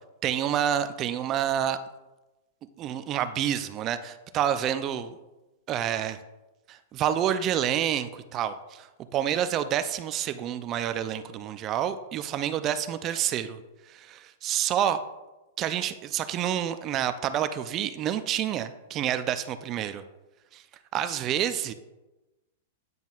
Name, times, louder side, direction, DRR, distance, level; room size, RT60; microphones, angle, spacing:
voice 1, 0.2-1.8 2.8-5.2 5.7-6.2 6.7-8.9 9.1-13.6 13.9-15.0 15.6-20.0 20.5-20.6 20.9-21.7, right 10 dB, 35° right, 11 dB, 0.4 m, -28 dB
9.3 x 5.3 x 2.4 m, 1.1 s
hypercardioid pair, 105°, 0 cm